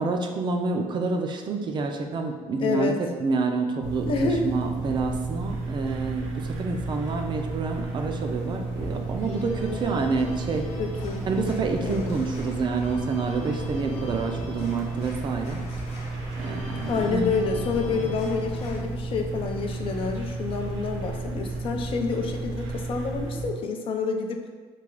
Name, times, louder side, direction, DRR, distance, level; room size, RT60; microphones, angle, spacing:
voice 1, 0.0-10.7 11.2-15.6 16.4-17.2 17.9-18.1, right 4 dB, 40° right, 4 dB, 0.4 m, -28 dB
voice 2, 2.6-3.0 4.1-4.5 10.8-11.3 11.8-12.1 16.9-24.4, left 4 dB, 50° left, 4 dB, 0.4 m, -28 dB
sound 1, 3.8-23.5, right 3 dB, 85° right, 0.7 m, -33 dB
Organ, 5.8-18.8, left 3 dB, 85° left, 0.8 m, -42 dB
3.2 x 2.3 x 3.7 m, 1.4 s
cardioid pair, 100°, 12 cm